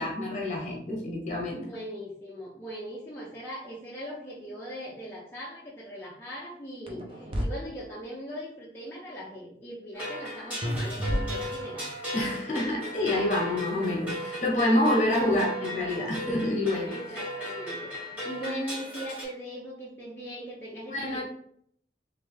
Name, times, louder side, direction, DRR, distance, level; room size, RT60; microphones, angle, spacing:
voice 1, 0.0-1.6 12.1-17.0 20.9-21.2, left 1 dB, 40° left, -2 dB, 1.1 m, -27 dB
voice 2, 1.6-11.9 16.9-21.2, equal, 15° left, -7 dB, 0.6 m, -40 dB
sound 1, 6.9-7.5 10.6-11.8, equal, 30° right, 0.5 m, -31 dB
sound 2, 9.9-19.3, equal, 10° right, 1.5 m, -36 dB
3.2 x 3.2 x 3.2 m, 0.66 s
head